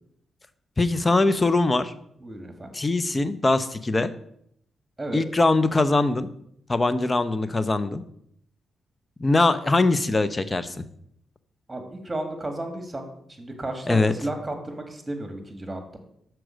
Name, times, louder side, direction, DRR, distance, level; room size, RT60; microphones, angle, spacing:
voice 1, 0.8-1.9 2.7-4.1 5.1-6.3 6.7-8.0 9.2-10.8 13.9-14.1, left 2 dB, 30° left, 13 dB, 0.7 m, -22 dB
voice 2, 2.2-2.7 5.0-5.2 11.7-16.0, right 1 dB, 20° right, 5 dB, 1.8 m, -33 dB
6.2 x 4.6 x 6.3 m, 0.71 s
supercardioid pair, 45°, 0 cm